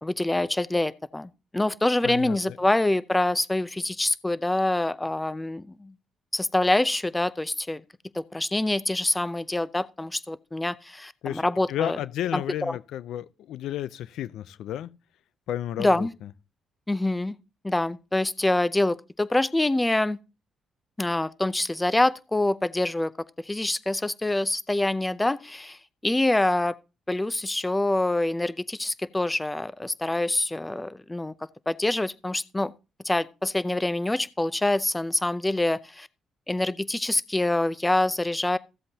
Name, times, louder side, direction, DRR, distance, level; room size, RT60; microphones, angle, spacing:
voice 1, 0.0-5.9 6.3-7.8 8.1-12.0 12.3-12.8 15.8-16.1 16.9-17.4 17.6-20.2 21.0-23.1 23.5-26.7 27.1-31.3 31.7-32.7 33.0-36.1 36.5-38.6, left 2 dB, 15° left, 0.6 m, -25 dB
voice 2, 2.0-2.6 11.2-14.9 15.5-16.1, left 11 dB, 80° left, 0.5 m, -32 dB
15.0 x 7.7 x 2.8 m
cardioid pair, 90°, 0 cm